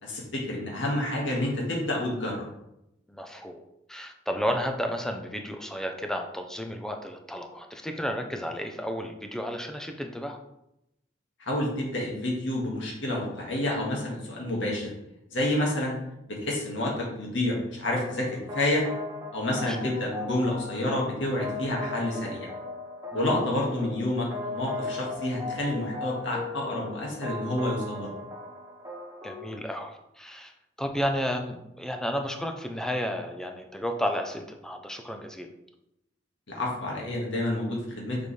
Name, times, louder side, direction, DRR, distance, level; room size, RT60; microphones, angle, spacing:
voice 1, 0.0-2.5 11.4-14.9 15.3-15.9 16.3-18.8 19.3-22.5 23.1-28.1 36.5-38.2, left 1 dB, 90° left, -2 dB, 1.8 m, -29 dB
voice 2, 3.1-3.6 3.9-10.4 19.7-19.9 23.1-23.4 29.2-30.5 30.8-35.5, equal, 5° left, 4 dB, 0.6 m, -32 dB
sound 1, 17.9-29.6, left 2 dB, 15° right, 1.4 m, -38 dB
6.4 x 5.2 x 3.2 m, 0.85 s
head